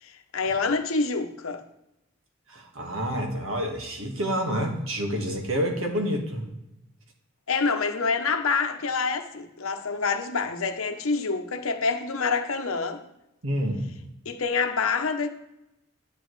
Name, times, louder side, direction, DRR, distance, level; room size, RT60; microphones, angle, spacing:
voice 1, 0.0-1.6 7.5-13.0 14.2-15.3, left 4 dB, 80° left, 0.8 m, -27 dB
voice 2, 2.5-6.4 13.4-13.9, equal, 80° right, 1.6 m, -28 dB
9.4 x 8.5 x 3.2 m
head